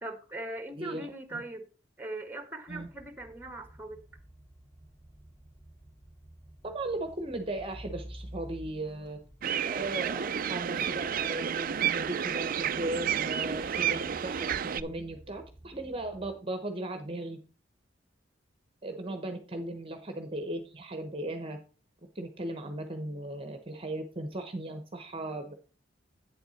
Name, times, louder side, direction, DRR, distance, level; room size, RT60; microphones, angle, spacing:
voice 1, 0.0-1.7 2.0-4.0 18.9-19.1, right 1 dB, 10° right, 9 dB, 1.4 m, -40 dB
sound 1, 2.7-16.3, right 1 dB, 15° left, 2.4 m, -51 dB
voice 2, 6.6-9.2 9.6-17.4 18.8-21.6 22.1-25.6, right 1 dB, 30° right, 6 dB, 1.0 m, -37 dB
sound 2, 9.4-14.8, right 8 dB, 50° right, 0.4 m, -31 dB
9.0 x 7.9 x 4.2 m, 0.35 s
head